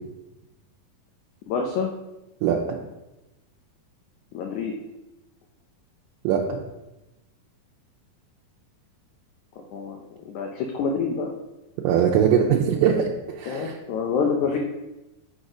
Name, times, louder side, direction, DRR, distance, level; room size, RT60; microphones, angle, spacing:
voice 1, 1.5-1.9 4.3-4.7 9.7-10.0 10.3-11.3 13.5-14.6, left 5 dB, 80° left, 1 dB, 1.7 m, -26 dB
voice 2, 2.4-2.8 6.2-6.6 11.8-13.0 13.3-13.8, right 8 dB, 80° right, -2 dB, 2.1 m, -21 dB
6.2 x 4.1 x 5.0 m, 0.98 s
omnidirectional pair, 4.1 m